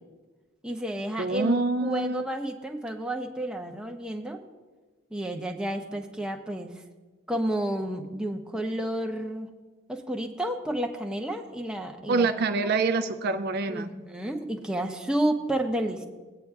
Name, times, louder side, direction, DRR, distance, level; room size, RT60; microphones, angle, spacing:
voice 1, 0.6-4.4 5.1-6.7 7.3-9.5 9.9-12.3 13.7-16.1, right 1 dB, 5° right, 1 dB, 0.7 m, -31 dB
voice 2, 1.2-2.2 12.1-13.9, right 3 dB, 50° right, 9 dB, 0.4 m, -26 dB
18.0 x 9.1 x 2.3 m, 1.3 s
head